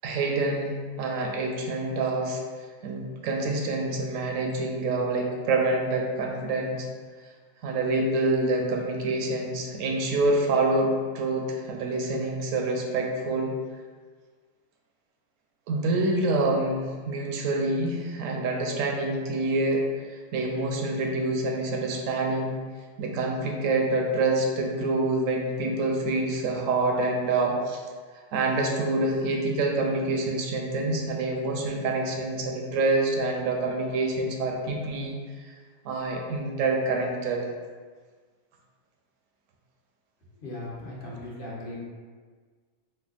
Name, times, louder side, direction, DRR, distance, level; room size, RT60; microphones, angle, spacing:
voice 1, 0.0-2.4 2.8-6.9 7.6-13.5 15.7-22.5 23.0-27.8 28.3-35.2 35.8-37.5, right 2 dB, 80° right, 1 dB, 1.0 m, -26 dB
voice 2, 40.4-41.8, left 1 dB, 45° left, -5 dB, 1.0 m, -37 dB
5.8 x 2.2 x 2.4 m, 1.5 s
omnidirectional pair, 1.3 m